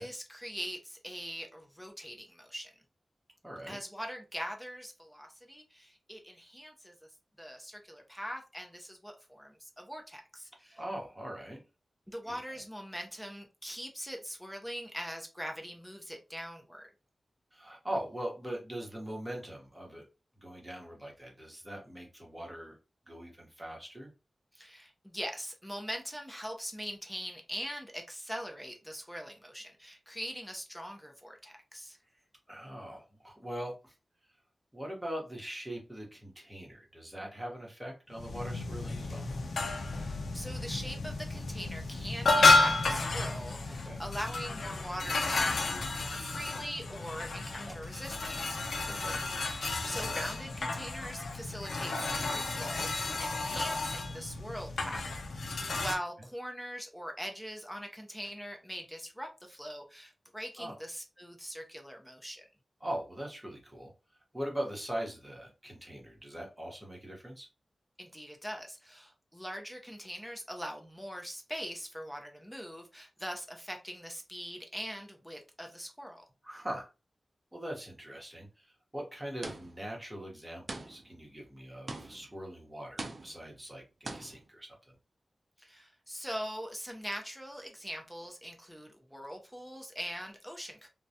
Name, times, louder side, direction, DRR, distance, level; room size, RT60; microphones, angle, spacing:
voice 1, 0.0-2.7 3.7-6.9 7.4-10.8 12.1-16.9 24.5-32.0 39.9-48.6 49.6-62.4 68.0-76.2 85.6-90.9, equal, 5° left, 0.5 m, -42 dB
voice 2, 3.4-3.8 10.7-11.6 12.2-12.4 17.5-20.0 20.4-22.8 23.1-24.1 32.5-33.9 34.7-39.3 43.8-44.0 47.6-47.8 48.9-49.2 53.5-53.6 60.6-60.8 62.8-63.9 64.3-67.5 76.4-76.9 77.5-84.8, right 1 dB, 10° right, 0.9 m, -41 dB
sound 1, 38.1-56.0, left 3 dB, 90° left, 0.4 m, -31 dB
sound 2, 79.4-79.9 80.7-81.2 81.9-82.4 83.0-83.5 84.0-84.5, right 2 dB, 50° right, 0.4 m, -42 dB
2.3 x 2.1 x 2.7 m
wide cardioid pair, 65°, 0 cm